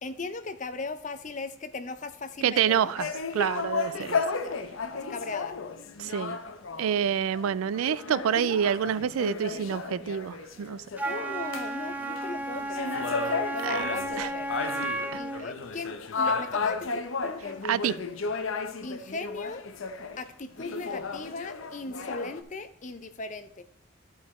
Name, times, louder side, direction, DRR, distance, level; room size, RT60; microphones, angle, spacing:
voice 1, 0.0-2.9 3.9-4.1 4.4-4.6 4.9-5.6 11.0-13.0 13.5-14.5 15.1-17.7 18.8-19.7 20.2-23.6, left 3 dB, 35° left, 0.5 m, -38 dB
voice 2, 2.4-4.2 6.0-6.4 6.8-10.8 13.6-13.8 14.2-14.3 17.6-18.0, right 8 dB, 90° right, 0.3 m, -27 dB
sound 1, 3.0-11.7 12.0-20.2 20.6-22.4, left 4 dB, 75° left, 0.7 m, -34 dB
Wind instrument woodwind instrument, 11.0-15.5, right 2 dB, 10° right, 0.5 m, -33 dB
13.0 x 4.7 x 4.2 m
head